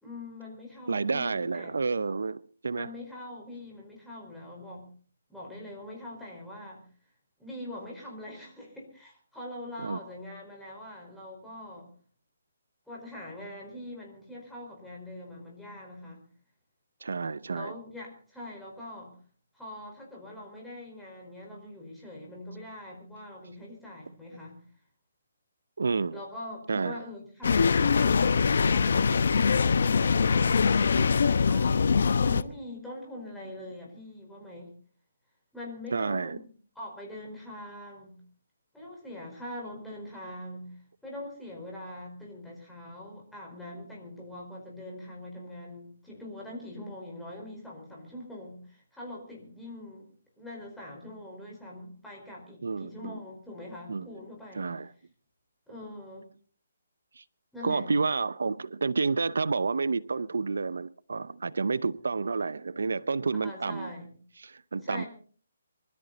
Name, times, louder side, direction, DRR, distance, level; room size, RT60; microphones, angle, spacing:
voice 1, 0.0-1.8 2.7-4.9 5.3-6.9 7.4-11.9 12.9-16.2 17.5-19.1 19.5-24.6 26.1-29.6 30.0-31.9 32.2-34.7 35.5-36.5 36.7-38.2 38.7-54.7 55.7-56.3 57.5-57.9 63.4-64.1 64.8-65.1, left 1 dB, ahead, 4.7 m, -43 dB
voice 2, 0.9-2.9 9.8-10.0 17.0-17.7 25.8-26.2 26.7-27.0 33.4-33.6 35.9-36.4 52.6-53.2 53.9-54.1 54.5-54.9 57.2-57.3 57.6-63.9 64.4-65.0, right 4 dB, 85° right, 0.6 m, -30 dB
sound 1, 27.4-32.4, left 5 dB, 65° left, 0.8 m, -23 dB
24.0 x 13.5 x 4.1 m
hypercardioid pair, 170°, 0 cm